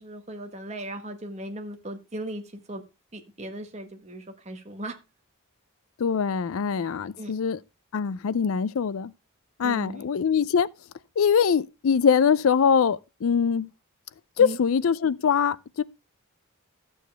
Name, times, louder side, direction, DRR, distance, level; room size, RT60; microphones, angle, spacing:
voice 1, 0.0-2.8 3.1-5.0 7.2-7.3 9.6-10.0 14.4-14.6, right 1 dB, 30° right, 1.3 m, -37 dB
voice 2, 6.0-7.6 7.9-9.1 9.6-10.7 11.2-13.7 14.4-15.8, left 6 dB, 65° left, 0.4 m, -23 dB
13.0 x 7.0 x 3.3 m
head